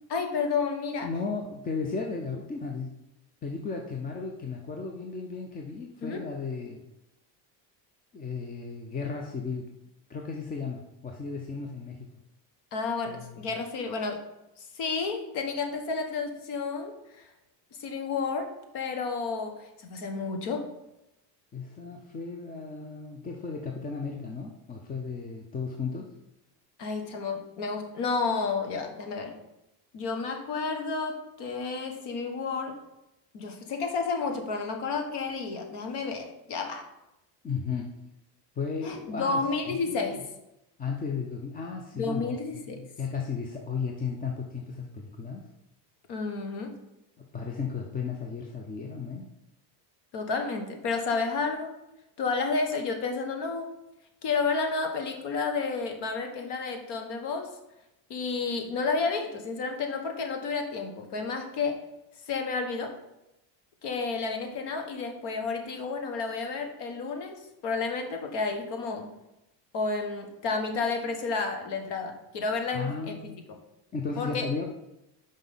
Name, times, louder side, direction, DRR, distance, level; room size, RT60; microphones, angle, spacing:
voice 1, 0.1-1.1 6.0-6.2 12.7-14.2 14.6-17.3 17.8-20.7 26.8-29.4 29.9-32.8 33.3-36.9 38.8-40.2 41.9-42.8 46.1-46.8 50.1-51.7 52.2-53.7 54.2-57.5 58.1-61.8 62.3-63.0 63.8-69.1 69.7-73.2 73.5-73.6 74.2-74.5, left 4 dB, 60° left, 5 dB, 1.5 m, -31 dB
voice 2, 1.0-2.9 3.4-6.8 8.1-9.7 10.1-12.0 13.1-13.5 21.5-26.1 37.4-37.9 38.6-40.2 40.8-45.5 47.2-49.3 72.7-73.4 73.9-74.7, left 5 dB, 20° left, 2 dB, 0.5 m, -35 dB
5.8 x 5.1 x 5.5 m, 0.90 s
cardioid pair, 155°, 46 cm